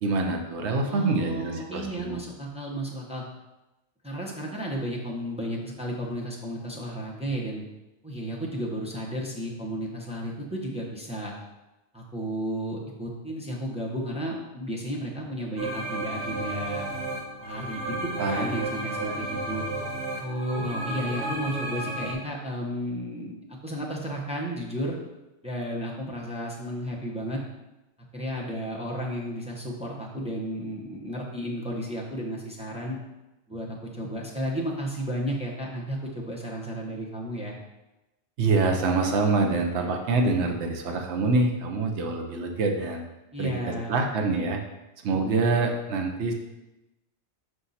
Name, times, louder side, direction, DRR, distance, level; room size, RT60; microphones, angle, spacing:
voice 1, 0.0-2.2 18.2-18.5 19.0-19.2 38.4-43.0 43.4-44.6 45.0-46.3, right 3 dB, 80° right, 3 dB, 1.1 m, -26 dB
voice 2, 0.8-3.2 4.0-7.6 8.0-11.3 11.9-16.9 17.4-19.6 20.2-23.4 23.6-25.0 25.4-27.4 28.1-33.0 33.5-37.6 43.3-43.9 45.1-45.5, equal, 5° right, -3 dB, 0.9 m, -33 dB
Dreamy. Wave, 15.6-22.1, right 1 dB, 60° right, 1.4 m, -32 dB
5.3 x 4.8 x 4.1 m, 0.98 s
omnidirectional pair, 1.1 m